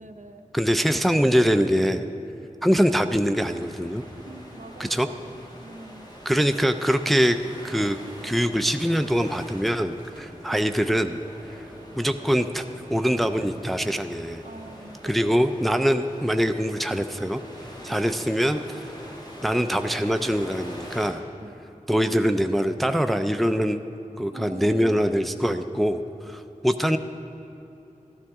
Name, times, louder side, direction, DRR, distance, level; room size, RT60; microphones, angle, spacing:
voice 1, 0.0-0.5 4.3-5.3 5.6-6.1 14.4-15.4 17.9-18.1 21.4-21.6 24.3-25.2, right 2 dB, 65° right, 5 dB, 0.8 m, -43 dB
voice 2, 0.5-2.0 2.6-4.0 4.8-5.1 6.3-7.4 7.6-8.0 8.2-11.2 12.0-12.6 12.9-14.4 15.0-17.4 17.8-18.8 19.4-21.2 21.9-23.8 24.2-26.0 26.3-27.0, equal, ahead, 8 dB, 0.4 m, -23 dB
sound 1, 3.4-21.1, equal, 30° left, 1.9 m, -44 dB
13.0 x 12.5 x 3.6 m, 3.0 s
wide cardioid pair, 45°, 14 cm